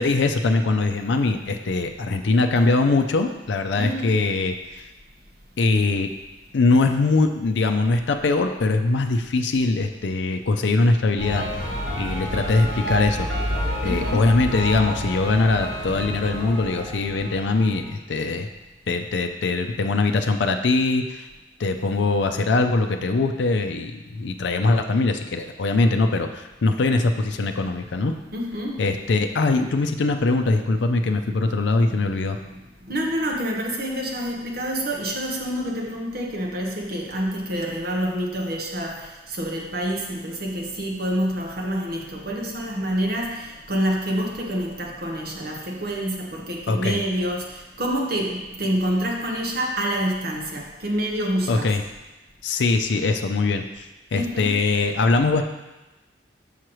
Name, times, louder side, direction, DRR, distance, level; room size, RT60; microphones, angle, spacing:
voice 1, 0.0-4.8 5.6-6.1 6.5-11.5 12.0-13.3 13.8-18.5 18.9-21.3 21.6-28.1 28.8-32.4 46.7-47.0 51.5-51.8 52.4-53.8 54.1-55.4, left 3 dB, 75° left, 5 dB, 0.5 m, -22 dB
voice 2, 3.8-4.2 13.8-14.3 28.3-28.8 31.6-32.1 32.5-51.8 54.1-54.6, equal, 55° right, 0 dB, 1.0 m, -27 dB
sound 1, 11.2-17.9, equal, 90° right, 2.1 m, -29 dB
6.2 x 5.7 x 3.1 m, 1.1 s
head